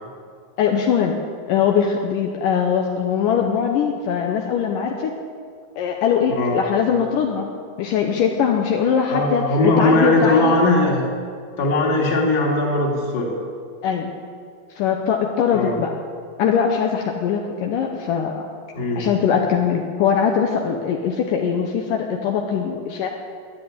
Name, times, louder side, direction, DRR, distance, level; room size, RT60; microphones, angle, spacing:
voice 1, 0.6-1.2 1.5-5.1 5.8-7.5 7.8-10.6 13.8-14.1 14.8-15.9 16.4-18.5 19.0-23.1, left 7 dB, 75° left, 2 dB, 2.3 m, -21 dB
voice 2, 6.3-6.6 9.1-11.0 11.6-13.3 15.5-15.8 18.7-19.1, left 2 dB, 30° left, -1 dB, 2.4 m, -19 dB
12.0 x 10.5 x 9.5 m, 2.2 s
omnidirectional pair, 4.2 m